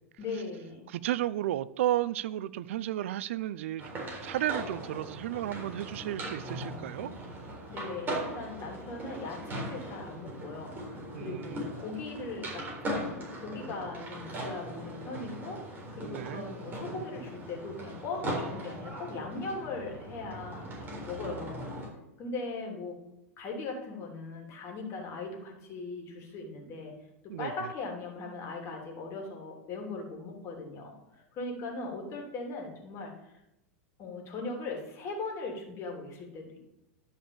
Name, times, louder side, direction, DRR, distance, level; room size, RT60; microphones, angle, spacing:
voice 1, 0.2-0.8 7.7-20.7 21.0-21.7 22.2-23.0 23.4-27.0 27.2-33.3 34.0-36.6, left 3 dB, 35° left, 3.0 m, -39 dB
voice 2, 0.9-7.1 11.1-11.6 16.0-16.4 27.3-27.5, right 13 dB, 60° right, 0.4 m, -33 dB
sound 1, 3.8-21.9, right 1 dB, 25° right, 3.9 m, -39 dB
11.0 x 5.4 x 7.1 m
figure-of-eight pair, 90°, 8 cm